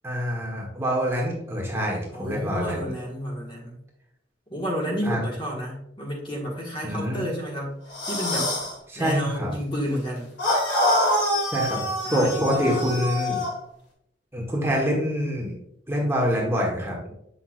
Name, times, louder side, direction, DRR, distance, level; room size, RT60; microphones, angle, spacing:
voice 1, 0.0-2.9 5.0-5.2 6.8-7.2 8.9-9.5 11.5-13.4 14.3-15.5 15.9-17.1, equal, 15° right, -3 dB, 1.3 m, -26 dB
voice 2, 2.1-3.8 4.5-7.7 8.1-8.5 8.9-10.3 12.0-13.0, equal, 25° left, -2 dB, 1.6 m, -31 dB
sound 1, 7.9-8.7 10.4-13.5, left 1 dB, 80° left, 2.5 m, -25 dB
7.8 x 5.9 x 2.5 m, 0.77 s
head